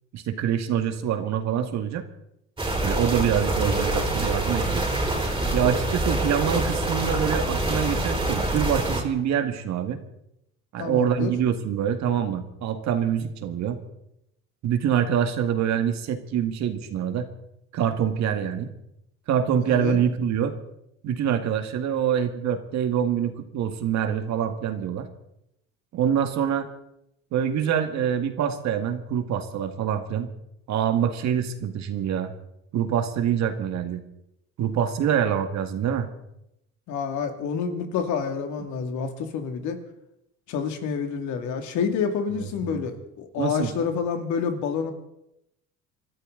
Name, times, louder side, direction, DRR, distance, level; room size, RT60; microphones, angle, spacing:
voice 1, 0.1-2.1 2.8-4.8 5.5-10.0 10.7-13.8 14.6-17.3 17.7-18.7 19.3-20.6 21.0-25.1 25.9-26.7 27.3-30.3 30.7-32.3 32.7-34.0 34.6-36.1 42.6-42.8 43.4-43.7, right 8 dB, 65° right, 7 dB, 2.0 m, -25 dB
sound 1, 2.6-9.0, right 2 dB, 15° right, 4.9 m, -25 dB
voice 2, 10.8-11.3 19.7-20.0 36.9-39.8 40.5-44.9, left 6 dB, 75° left, 6 dB, 2.5 m, -28 dB
25.0 x 13.0 x 4.0 m, 0.82 s
cardioid pair, 110°, 30 cm